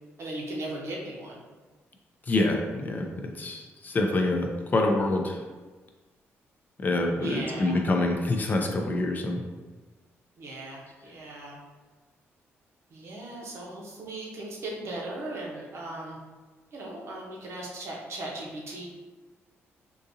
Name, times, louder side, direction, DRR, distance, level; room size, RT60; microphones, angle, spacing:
voice 1, 0.2-1.4 7.2-7.8 10.4-11.6 12.9-16.2 16.7-18.9, right 1 dB, 60° right, -2 dB, 0.8 m, -38 dB
voice 2, 2.3-5.4 6.8-9.4, left 2 dB, 35° left, 2 dB, 0.4 m, -26 dB
3.8 x 2.5 x 2.6 m, 1.3 s
cardioid pair, 105°, 5 cm